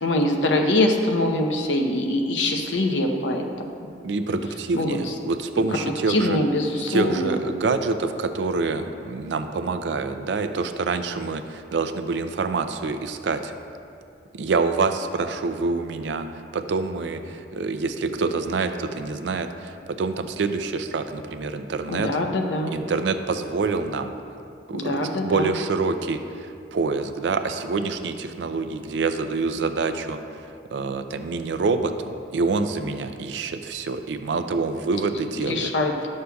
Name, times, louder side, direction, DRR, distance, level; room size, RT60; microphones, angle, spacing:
voice 1, 0.0-3.9 4.7-5.1 5.7-7.4 21.9-22.7 24.7-25.6 35.4-36.1, left 1 dB, 80° left, 3 dB, 0.7 m, -24 dB
voice 2, 4.0-6.4 6.9-13.5 14.3-16.3 16.5-22.1 22.7-24.1 24.7-30.2 30.7-35.7, right 4 dB, 70° right, 8 dB, 0.4 m, -26 dB
11.0 x 6.4 x 2.3 m, 2.4 s
head